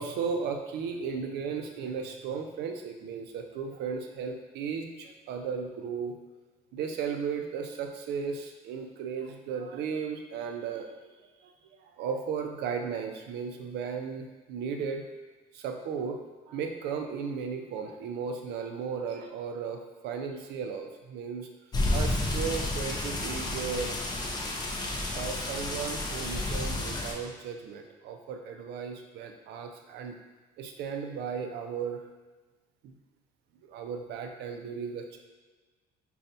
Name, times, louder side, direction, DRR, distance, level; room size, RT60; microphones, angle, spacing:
voice 1, 0.0-6.1 6.7-10.9 11.4-11.5 11.8-15.0 15.5-16.2 16.5-21.5 21.9-24.0 25.1-30.2 30.6-32.0 32.8-32.9 33.7-35.2, right 6 dB, 80° right, 4 dB, 0.5 m, -35 dB
sound 1, 21.7-27.1, left 2 dB, 25° left, 0.6 m, -31 dB
5.2 x 2.3 x 2.7 m, 1.3 s
cardioid pair, 110°, 17 cm